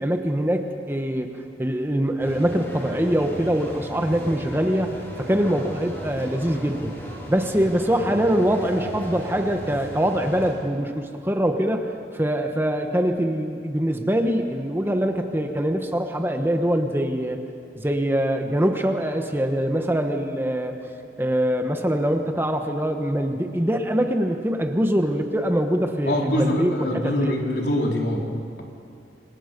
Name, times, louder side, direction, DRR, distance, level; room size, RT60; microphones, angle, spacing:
voice 1, 0.0-6.9 7.3-11.9 12.1-17.4 17.8-20.7 21.2-26.7 27.0-27.4, equal, 15° right, 5 dB, 1.2 m, -23 dB
sound 1, 2.2-10.5, equal, 15° left, 7.8 m, -36 dB
voice 2, 26.0-28.3, left 1 dB, 75° left, -1 dB, 3.8 m, -24 dB
27.0 x 26.0 x 5.3 m, 2.4 s
head